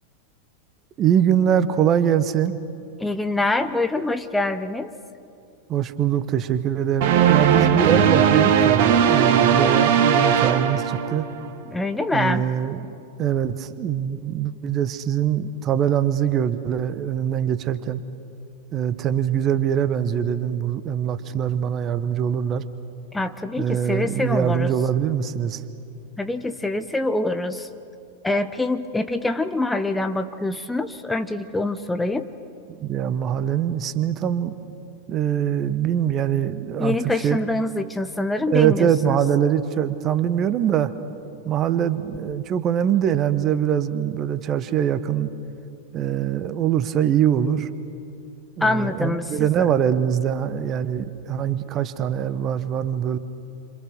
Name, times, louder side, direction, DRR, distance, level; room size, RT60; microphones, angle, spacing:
voice 1, 1.0-2.6 5.7-11.3 12.1-12.9 13.2-18.0 18.7-22.6 23.6-25.6 32.7-34.5 35.1-37.0 37.2-37.4 38.5-40.9 41.4-45.3 45.9-47.7 48.6-53.2, right 9 dB, 30° right, 13 dB, 1.2 m, -23 dB
voice 2, 3.0-4.9 11.7-12.4 23.1-24.7 26.2-27.7 28.2-32.3 36.8-39.2 48.6-49.7, left 2 dB, 5° left, 9 dB, 1.0 m, -25 dB
sound 1, 7.0-11.5, right 8 dB, 50° right, 1.7 m, -18 dB
29.5 x 26.5 x 6.3 m, 2.5 s
figure-of-eight pair, 90°, 0 cm